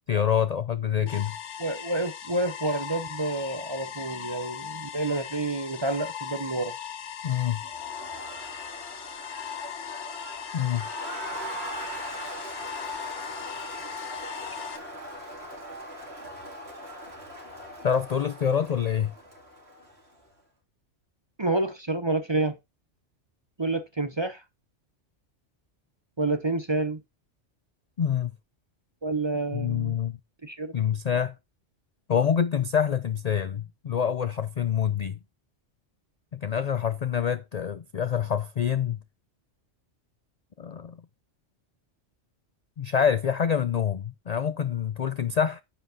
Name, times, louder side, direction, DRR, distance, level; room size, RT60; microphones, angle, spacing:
voice 1, 0.1-1.4 7.2-7.6 10.5-10.9 17.8-19.1 28.0-28.3 29.5-30.2 30.7-31.3 32.1-35.2 36.3-39.0 40.6-41.0 42.8-45.6, left 8 dB, 55° left, 0.4 m, -26 dB
sound 1, 1.1-14.8, left 9 dB, 75° left, 1.2 m, -38 dB
voice 2, 1.6-6.7 21.4-22.5 23.6-24.4 26.2-27.0 29.0-30.0 30.4-30.7, right 2 dB, 30° right, 0.6 m, -29 dB
Crowd, 7.6-20.2, right 1 dB, 55° right, 3.1 m, -40 dB
9.8 x 7.8 x 2.7 m
omnidirectional pair, 1.2 m